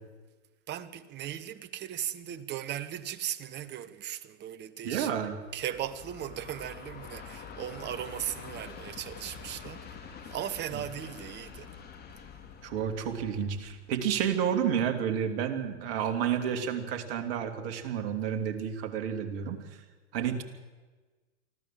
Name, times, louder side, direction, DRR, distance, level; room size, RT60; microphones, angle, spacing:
voice 1, 0.7-5.1 5.5-9.9 10.3-11.7, right 11 dB, 30° right, 1.3 m, -37 dB
voice 2, 4.8-5.4 10.7-10.8 12.6-19.8 20.1-20.4, right 8 dB, 55° right, 2.9 m, -30 dB
Train, 5.5-14.7, left 6 dB, 25° left, 3.6 m, -46 dB
24.5 x 15.0 x 7.7 m
hypercardioid pair, 110°, 35 cm